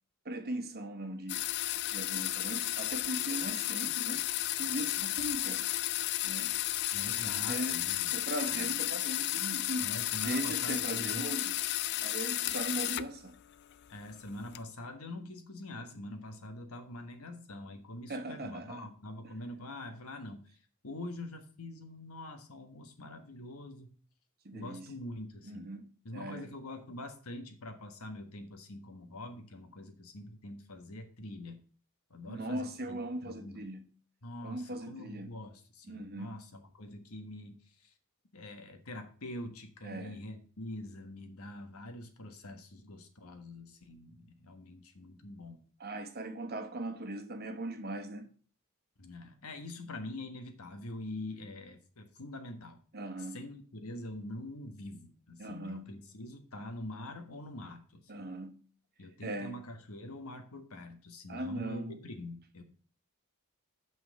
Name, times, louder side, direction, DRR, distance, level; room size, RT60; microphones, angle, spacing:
voice 1, 0.2-1.4 1.9-4.2 4.6-5.7 6.2-6.5 7.2-7.8 8.1-9.9 10.2-11.6 12.0-13.4 18.1-18.9 24.4-24.9 25.4-26.5 32.3-33.9 34.4-35.4 35.9-36.4 39.8-40.2 45.8-48.3 52.9-53.4 55.4-55.9 58.1-58.6 59.2-59.5 61.3-62.0, right 1 dB, 45° right, 1.1 m, -39 dB
sound 1, 1.3-13.2 13.5-14.6, left 14 dB, 50° left, 0.4 m, -33 dB
voice 2, 6.9-8.1 8.5-8.8 9.8-11.3 13.9-20.4 20.8-23.9 24.5-25.7 26.0-31.6 32.1-33.7 34.2-37.9 38.3-45.6 49.0-52.8 53.3-58.1 59.0-62.6, left 1 dB, 80° left, 1.4 m, -45 dB
6.0 x 5.6 x 6.7 m
head